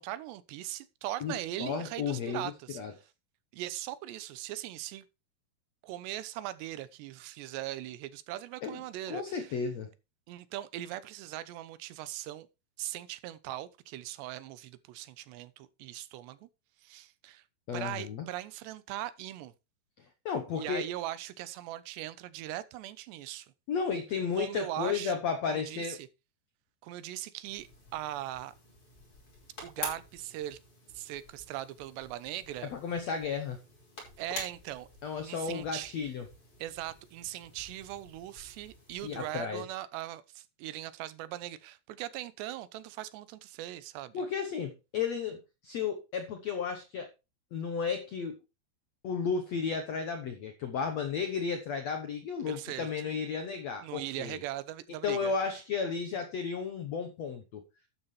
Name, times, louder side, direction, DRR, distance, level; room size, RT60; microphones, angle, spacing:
voice 1, 0.0-3.0 3.5-5.1 5.8-9.6 10.3-12.5 12.8-16.5 16.8-17.4 17.7-19.5 20.6-23.5 24.4-25.1 25.5-26.0 26.8-28.6 29.6-30.6 30.9-32.7 34.2-34.9 35.2-35.9 36.6-44.2 52.5-52.9 53.8-55.3, right 14 dB, 90° right, 3.1 m, -40 dB
voice 2, 1.2-2.4 2.7-2.9 8.6-8.8 9.1-9.9 17.7-18.3 20.2-20.9 23.7-26.0 32.7-33.6 35.0-36.3 39.0-39.6 44.1-47.1 47.5-48.4 49.0-54.4 55.0-57.6, left 6 dB, 80° left, 1.5 m, -33 dB
sound 1, 27.4-39.4, left 2 dB, 35° left, 5.8 m, -48 dB
12.5 x 9.5 x 3.2 m
omnidirectional pair, 4.8 m